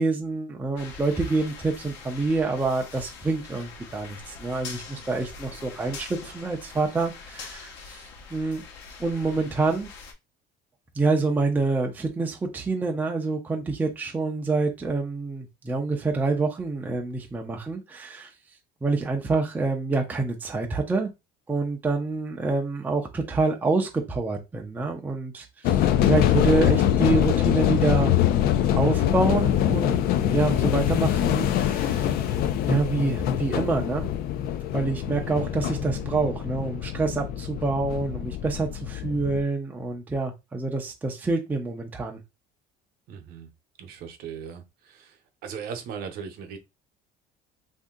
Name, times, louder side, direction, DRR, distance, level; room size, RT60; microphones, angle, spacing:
voice 1, 0.0-8.6 9.0-9.9 10.9-18.3 18.8-21.1 21.5-28.2 28.7-29.9 30.2-32.3 32.7-34.1 34.7-42.2, right 3 dB, 10° right, 0.4 m, -27 dB
sound 1, 0.8-10.1, left 5 dB, 70° left, 1.0 m, -43 dB
sound 2, 25.6-39.4, left 11 dB, 55° left, 0.4 m, -24 dB
voice 2, 43.1-43.5 43.8-45.2 45.4-46.6, right 7 dB, 55° right, 0.8 m, -38 dB
2.7 x 2.6 x 3.6 m
cardioid pair, 155°, 19 cm